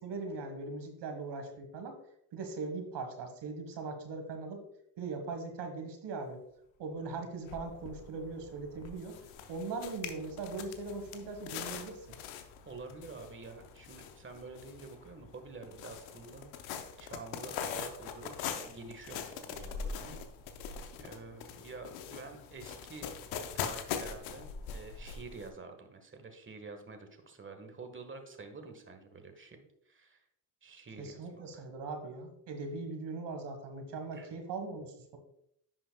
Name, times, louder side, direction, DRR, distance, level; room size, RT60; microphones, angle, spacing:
voice 1, 0.0-2.0 2.3-4.6 5.0-6.4 6.8-9.2 9.5-12.2 31.0-35.2, right 3 dB, 65° right, 6 dB, 1.6 m, -40 dB
sound 1, 7.1-7.2 7.5-25.5, left 7 dB, 90° left, 0.8 m, -43 dB
voice 2, 12.6-16.5 16.7-20.2 21.0-23.1 23.5-30.2 30.6-31.6 34.1-34.3, right 4 dB, 25° right, 6 dB, 1.5 m, -48 dB
10.0 x 5.7 x 2.3 m, 0.75 s
supercardioid pair, 60°, 45 cm